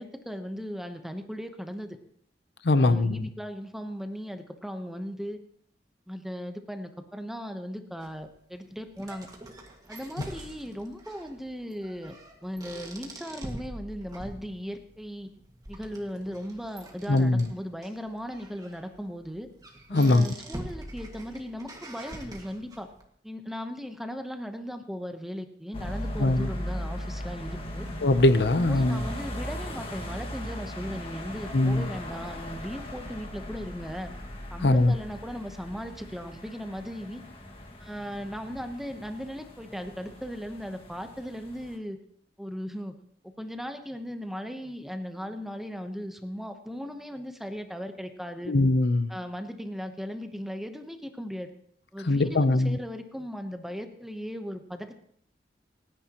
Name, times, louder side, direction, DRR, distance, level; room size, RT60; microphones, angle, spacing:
voice 1, 0.0-2.0 2.7-5.4 6.1-9.3 9.9-12.1 12.4-15.3 15.7-19.5 19.9-22.9 23.2-27.9 28.5-34.1 34.5-37.2 37.8-42.0 42.4-42.9 43.4-48.6 49.1-51.5 51.9-55.0, equal, ahead, 0.9 m, -37 dB
voice 2, 2.6-3.3 17.1-17.5 19.9-20.3 26.2-26.5 28.0-29.0 31.5-31.9 34.6-34.9 48.5-49.1 52.1-52.8, left 2 dB, 70° left, 0.7 m, -22 dB
sound 1, 8.0-23.0, right 1 dB, 20° right, 1.9 m, -45 dB
sound 2, 25.7-41.8, equal, 30° left, 1.9 m, -38 dB
28.0 x 9.9 x 3.0 m
head